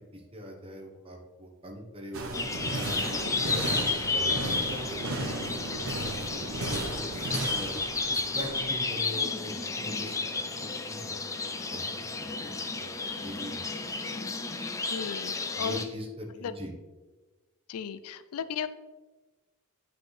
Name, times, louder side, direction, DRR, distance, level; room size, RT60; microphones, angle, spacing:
voice 1, 0.1-3.6 4.1-4.9 5.2-5.5 6.3-7.7 8.1-13.7 15.6-16.7, equal, 25° right, 2 dB, 1.0 m, -42 dB
sound 1, 2.1-8.8, right 2 dB, 65° right, 0.9 m, -35 dB
sound 2, 2.3-15.8, left 4 dB, 15° left, 0.4 m, -32 dB
voice 2, 14.9-15.9 16.4-16.5 17.7-18.7, left 7 dB, 80° left, 13 dB, 0.4 m, -35 dB
8.2 x 4.9 x 3.2 m, 1.2 s
head